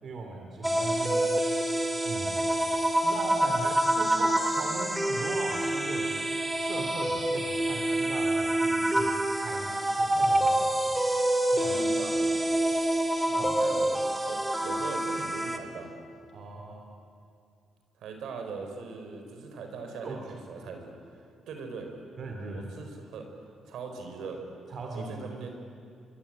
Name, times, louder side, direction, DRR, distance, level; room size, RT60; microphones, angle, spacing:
voice 1, 0.0-1.3 2.0-2.4 2.9-6.2 6.6-11.0 11.5-11.8 13.4-13.6 16.3-16.9 20.0-20.2 20.6-20.7 22.2-22.7 24.7-25.4, right 3 dB, 55° right, 2 dB, 3.0 m, -39 dB
sound 1, 0.6-15.6, right 1 dB, 10° right, 2.4 m, -27 dB
voice 2, 11.7-12.3 13.3-15.9 18.0-20.9 21.5-21.9 22.5-23.3 23.7-24.4 24.9-25.5, right 4 dB, 75° right, 4 dB, 4.5 m, -40 dB
25.0 x 23.5 x 8.7 m, 2.4 s
cardioid pair, 90°, 0 cm